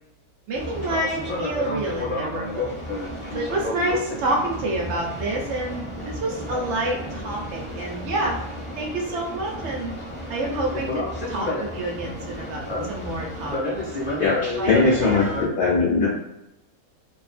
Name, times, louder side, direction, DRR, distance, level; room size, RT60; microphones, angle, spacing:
Boat Water vehicle, 0.5-15.4, left 1 dB, 10° left, 0.6 m, -31 dB
voice 1, 0.5-2.7 3.3-8.3 8.8-9.9 10.3-11.0 11.3-13.7 14.5-15.5, right 2 dB, 65° right, 0 dB, 0.7 m, -28 dB
voice 2, 14.2-16.1, left 4 dB, 60° left, -6 dB, 0.7 m, -20 dB
2.6 x 2.3 x 2.4 m, 0.89 s
omnidirectional pair, 1.6 m